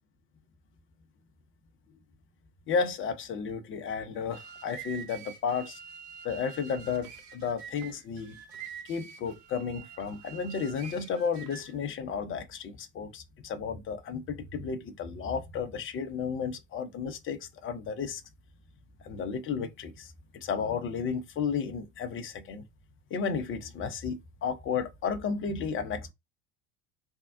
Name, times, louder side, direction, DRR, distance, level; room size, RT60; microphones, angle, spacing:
voice 1, 2.7-5.8 6.2-8.4 8.9-18.2 19.0-22.6 23.1-26.1, left 6 dB, 25° left, 0.7 m, -33 dB
sound 1, 4.1-11.8, right 7 dB, 35° right, 1.1 m, -46 dB
3.5 x 2.3 x 3.5 m
figure-of-eight pair, 75°, 47 cm